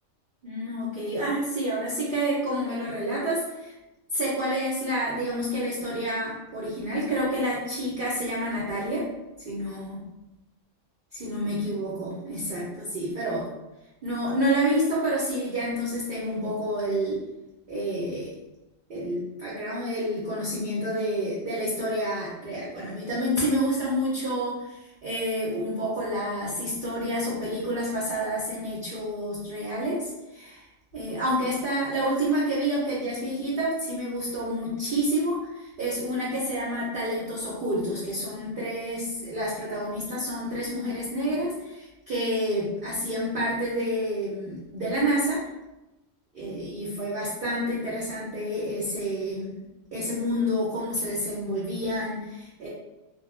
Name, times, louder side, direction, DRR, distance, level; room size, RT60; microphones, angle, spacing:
voice 1, 0.4-3.7 4.1-9.1 9.4-10.0 11.1-13.5 14.0-17.2 17.7-18.3 18.9-30.6 30.9-45.4 46.3-49.6 49.9-52.7, equal, 55° right, -6 dB, 0.6 m, -29 dB
2.2 x 2.1 x 2.9 m, 0.97 s
omnidirectional pair, 1.4 m